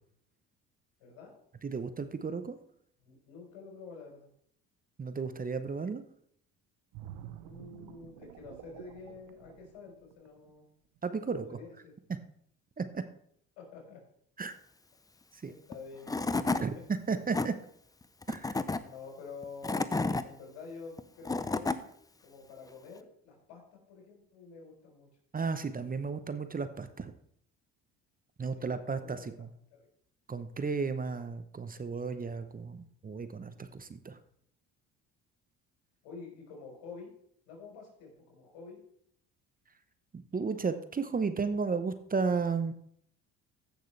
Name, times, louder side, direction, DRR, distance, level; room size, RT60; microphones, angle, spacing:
voice 1, 1.0-1.3 3.0-4.3 7.4-10.7 11.2-11.9 13.6-14.0 15.4-16.2 16.6-16.7 18.8-21.9 22.2-25.1 28.6-29.3 29.8-29.9 36.0-37.1 37.5-38.8, left 4 dB, 85° left, 0 dB, 4.2 m, -48 dB
voice 2, 1.6-2.6 5.0-6.0 11.0-11.5 12.8-13.0 14.4-14.5 15.4-15.5 16.6-17.5 18.3-18.6 25.3-27.1 28.4-29.5 30.3-34.2 40.3-42.7, right 5 dB, 25° right, 11 dB, 0.8 m, -33 dB
sound 1, 6.9-10.5 11.0-11.2, right 11 dB, 75° right, 0.9 m, -49 dB
Tools / Wood, 15.7-15.8 16.1-16.6 17.1-17.5 18.2-18.8 19.4-20.2 21.0-21.8, left 3 dB, 10° left, 0.5 m, -30 dB
15.0 x 6.6 x 3.3 m, 0.68 s
supercardioid pair, 75°, 36 cm